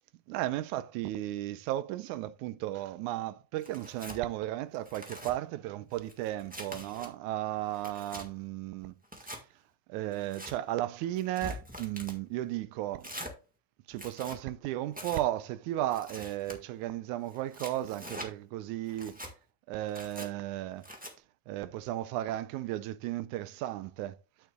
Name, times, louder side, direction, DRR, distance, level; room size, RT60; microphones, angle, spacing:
voice 1, 0.3-8.9 9.9-13.1 13.9-19.2 19.7-20.9 21.5-24.2, right 14 dB, 85° right, 2.1 m, -35 dB
Tearing, 3.6-4.2 4.7-5.3 5.9-7.1 7.6-8.3 9.0-9.4 10.1-10.5 11.1-12.2 13.0-13.3 13.9-14.4 14.9-15.2 15.9-16.6 17.3-18.3 18.9-19.3 19.9-20.3 20.8-21.1, equal, 10° right, 0.4 m, -44 dB
9.3 x 8.3 x 2.3 m
omnidirectional pair, 3.4 m